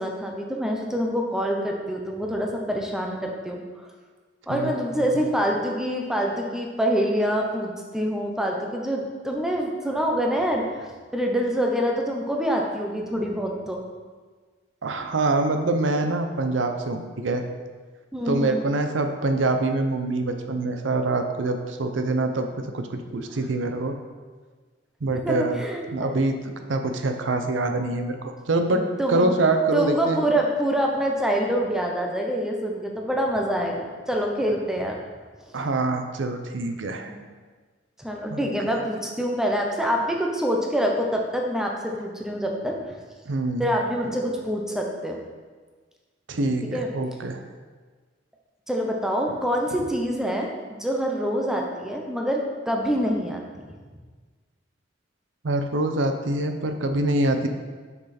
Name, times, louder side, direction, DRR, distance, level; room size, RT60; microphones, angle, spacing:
voice 1, 0.0-3.6 4.5-10.9 11.1-13.8 18.1-18.6 23.3-23.4 25.1-26.1 28.7-29.3 29.7-35.0 35.4-35.6 37.1-37.2 38.0-43.0 43.6-45.2 46.7-46.9 48.7-53.7, equal, 5° right, 0 dB, 0.7 m, -26 dB
voice 2, 14.8-17.4 18.3-23.9 25.0-25.6 25.9-30.2 35.5-37.1 38.3-38.4 43.3-43.7 46.3-47.4 55.4-57.5, right 2 dB, 85° right, 6 dB, 0.6 m, -25 dB
6.3 x 6.0 x 4.2 m, 1.4 s
head